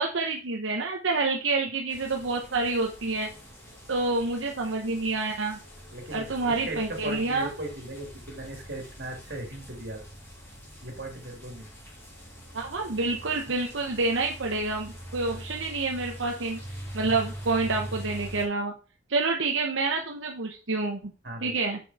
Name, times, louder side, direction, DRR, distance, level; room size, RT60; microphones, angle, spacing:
voice 1, 0.0-3.3 3.9-5.6 6.1-7.5 12.5-16.6 16.9-18.7 19.1-21.1 21.4-21.8, right 3 dB, 80° right, 2 dB, 1.0 m, -28 dB
sound 1, 1.9-18.5, equal, 15° left, 3.0 m, -43 dB
voice 2, 5.9-10.0 10.8-11.7 15.3-15.4 17.0-17.2 21.2-21.6, right 1 dB, 55° right, 2 dB, 2.8 m, -38 dB
6.9 x 6.2 x 4.2 m, 0.36 s
head